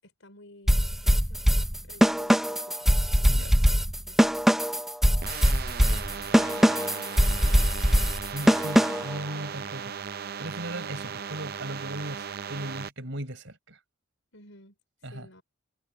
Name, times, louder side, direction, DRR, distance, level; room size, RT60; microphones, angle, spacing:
voice 1, 0.0-1.4 1.8-2.9 3.2-3.7 4.0-4.4 6.4-7.6 14.3-15.4, left 1 dB, 65° left, 5.4 m, -53 dB
sound 1, 0.7-9.2, equal, ahead, 0.6 m, -22 dB
sound 2, 5.2-12.9, right 7 dB, 50° right, 0.5 m, -37 dB
voice 2, 8.3-10.0 10.4-13.8 15.0-15.3, right 1 dB, 65° right, 5.0 m, -37 dB
head